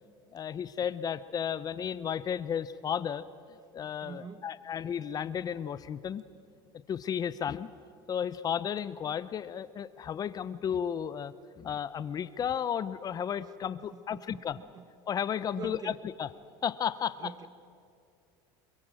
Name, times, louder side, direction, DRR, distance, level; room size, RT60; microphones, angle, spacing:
voice 1, 0.3-3.2 3.7-6.2 6.9-7.7 8.1-14.6 15.1-16.3 16.6-17.3, left 8 dB, 35° left, 15 dB, 0.7 m, -33 dB
voice 2, 4.0-4.5 13.9-14.8 15.6-16.0 17.2-17.5, right 6 dB, 35° right, 14 dB, 1.1 m, -45 dB
27.0 x 22.5 x 7.7 m, 2.4 s
supercardioid pair, 120°, 12 cm